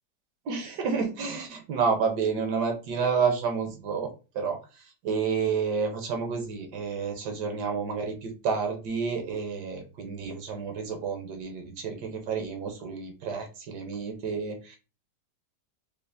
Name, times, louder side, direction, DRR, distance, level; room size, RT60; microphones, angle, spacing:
voice 1, 0.4-4.1 4.3-14.8, right 5 dB, 75° right, 4 dB, 1.4 m, -30 dB
5.3 x 2.0 x 2.5 m, 0.32 s
omnidirectional pair, 1.8 m